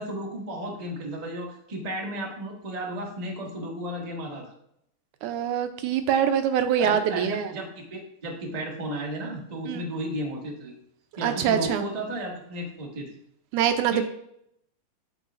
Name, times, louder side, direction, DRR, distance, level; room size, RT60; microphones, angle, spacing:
voice 1, 0.0-4.5 6.8-10.7 11.2-13.1 13.9-14.0, right 1 dB, 40° right, -2 dB, 0.5 m, -34 dB
voice 2, 5.2-7.5 9.7-9.8 11.2-11.8 13.5-14.0, right 9 dB, 80° right, 8 dB, 2.0 m, -24 dB
13.0 x 4.7 x 2.5 m, 0.73 s
omnidirectional pair, 3.6 m